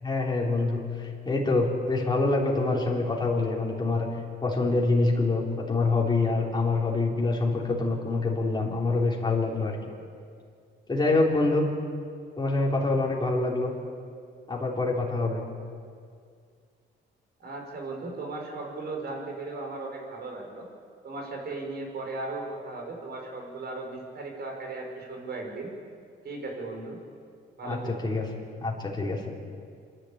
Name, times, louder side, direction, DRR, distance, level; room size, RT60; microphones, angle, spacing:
voice 1, 0.0-4.1 4.4-9.8 10.9-11.7 12.4-13.7 14.5-15.4 27.6-27.8 28.0-28.3 28.6-29.3, left 3 dB, 20° left, -3 dB, 3.8 m, -25 dB
voice 2, 17.4-20.7 21.0-25.7 26.2-27.0 27.6-28.1, right 3 dB, 55° right, 1 dB, 5.5 m, -36 dB
25.5 x 11.5 x 9.0 m, 2.2 s
cardioid pair, 90°, 20 cm